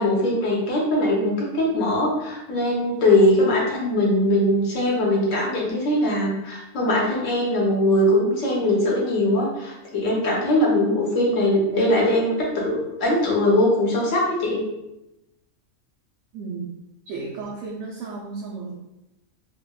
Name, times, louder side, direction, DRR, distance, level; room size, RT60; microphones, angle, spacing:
voice 1, 0.0-14.6, left 1 dB, 70° left, -3 dB, 1.2 m, -21 dB
voice 2, 16.3-16.7 17.1-18.8, right 4 dB, 80° right, -6 dB, 1.0 m, -33 dB
3.4 x 2.1 x 2.3 m, 0.92 s
omnidirectional pair, 1.4 m